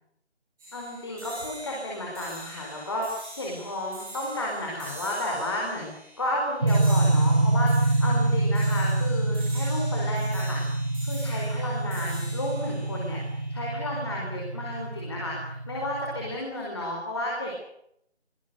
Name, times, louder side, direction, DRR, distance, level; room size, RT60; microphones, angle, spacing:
sound 1, 0.6-14.0, right 1 dB, ahead, 1.7 m, -44 dB
voice 1, 0.7-5.9 6.2-10.6 11.0-17.5, left 1 dB, 25° left, -2 dB, 4.9 m, -32 dB
sound 2, 6.6-16.4, right 2 dB, 40° right, 2.0 m, -26 dB
24.5 x 22.0 x 6.7 m, 0.73 s
figure-of-eight pair, 175°, 34 cm